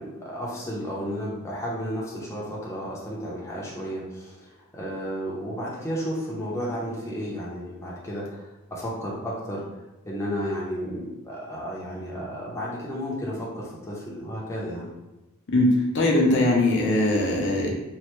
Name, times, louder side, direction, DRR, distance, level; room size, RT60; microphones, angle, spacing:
voice 1, 0.0-9.6 10.1-14.9, equal, 15° left, -5 dB, 0.6 m, -33 dB
voice 2, 15.5-17.7, left 1 dB, 60° left, -2 dB, 0.6 m, -21 dB
3.1 x 2.1 x 3.0 m, 1.0 s
head